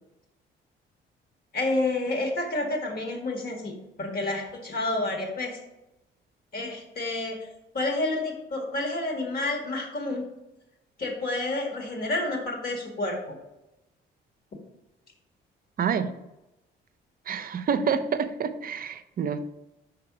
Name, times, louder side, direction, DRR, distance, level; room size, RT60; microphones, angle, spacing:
voice 1, 1.5-3.7 4.0-5.6 6.5-7.5 7.7-10.2 11.0-13.4, left 2 dB, 50° left, 1 dB, 1.9 m, -29 dB
voice 2, 15.8-16.1 17.3-19.4, right 6 dB, 45° right, 10 dB, 0.5 m, -27 dB
5.8 x 3.3 x 5.8 m, 0.94 s
cardioid pair, 90°, 20 cm